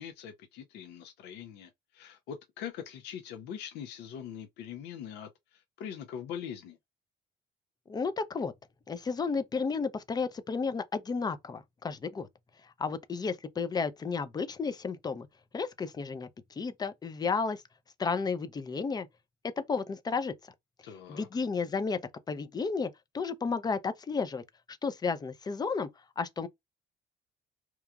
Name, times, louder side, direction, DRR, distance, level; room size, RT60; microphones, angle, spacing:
voice 1, 0.0-6.8 20.8-21.3, left 8 dB, 80° left, 0.5 m, -42 dB
voice 2, 7.9-8.5 8.9-12.3 12.8-15.3 15.5-16.3 16.6-17.6 18.0-19.1 19.6-20.3 21.1-22.0 22.3-24.4 24.7-25.9 26.2-26.5, left 5 dB, 25° left, 0.4 m, -32 dB
2.9 x 2.3 x 2.3 m
cardioid pair, 110°, 17 cm